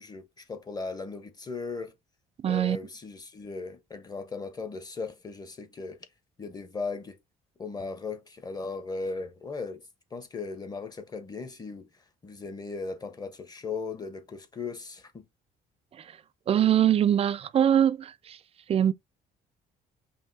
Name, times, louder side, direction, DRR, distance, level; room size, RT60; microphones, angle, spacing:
voice 1, 0.0-1.9 2.4-6.0 6.4-7.2 7.6-9.8 10.1-11.9 12.2-15.3, left 4 dB, 25° left, 1.1 m, -37 dB
voice 2, 2.4-2.8 16.5-18.4 18.7-18.9, right 10 dB, 35° right, 0.4 m, -23 dB
5.5 x 2.6 x 2.7 m
cardioid pair, 110°, 17 cm